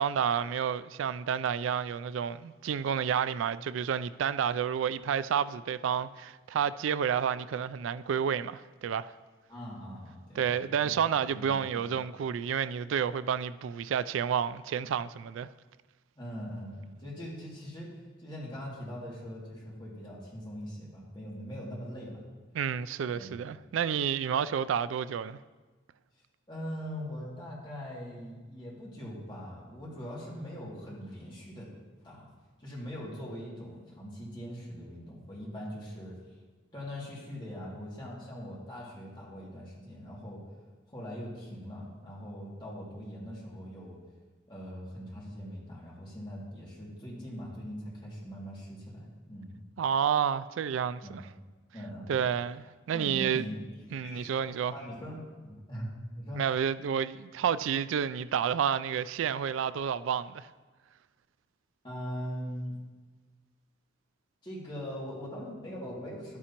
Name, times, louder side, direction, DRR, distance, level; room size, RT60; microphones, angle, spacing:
voice 1, 0.0-9.1 10.4-15.5 22.5-25.4 49.8-51.2 52.1-53.5 53.9-54.7 56.4-60.5, right 8 dB, 75° right, 0.3 m, -30 dB
voice 2, 9.5-10.9 11.3-11.9 16.2-17.9 18.2-22.2 23.1-23.3 26.5-31.7 32.0-32.3 32.6-36.2 36.7-40.4 40.9-44.0 44.5-49.6 51.0-51.3 51.7-52.3 52.9-54.3 54.7-56.4 61.8-62.8 64.4-66.4, equal, 25° left, 2.3 m, -41 dB
11.5 x 9.4 x 2.9 m
head